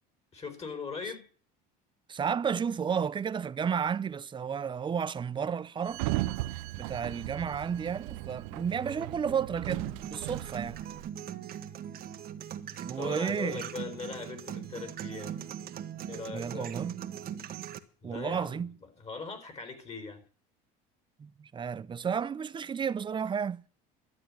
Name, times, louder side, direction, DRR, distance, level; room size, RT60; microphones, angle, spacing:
voice 1, 0.3-1.2 8.8-9.0 13.0-15.3 16.1-16.7 18.0-18.7 19.0-20.2, left 5 dB, 30° left, 4.2 m, -40 dB
voice 2, 2.1-6.0 6.8-10.8 12.8-13.6 16.3-17.0 18.0-18.7 21.2-23.6, right 7 dB, 25° right, 0.6 m, -32 dB
Sliding door, 5.9-11.1, right 17 dB, 85° right, 0.7 m, -36 dB
sound 1, 9.8-17.8, right 9 dB, 50° right, 1.5 m, -40 dB
12.5 x 8.2 x 9.9 m
supercardioid pair, 100°, 20 cm